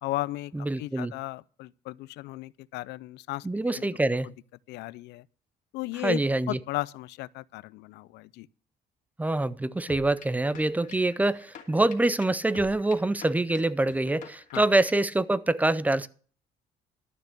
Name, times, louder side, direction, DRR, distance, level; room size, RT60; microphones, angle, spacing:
voice 1, 0.0-3.9 4.2-4.3 4.7-5.3 5.7-6.2 6.5-8.5 14.5-14.6, left 18 dB, 80° left, 0.5 m, -35 dB
voice 2, 0.5-1.1 3.4-4.3 6.0-6.6 9.2-16.1, right 2 dB, 10° right, 0.5 m, -25 dB
sound 1, 9.9-15.2, left 7 dB, 50° left, 2.4 m, -48 dB
12.0 x 6.8 x 6.5 m
cardioid pair, 110°, 17 cm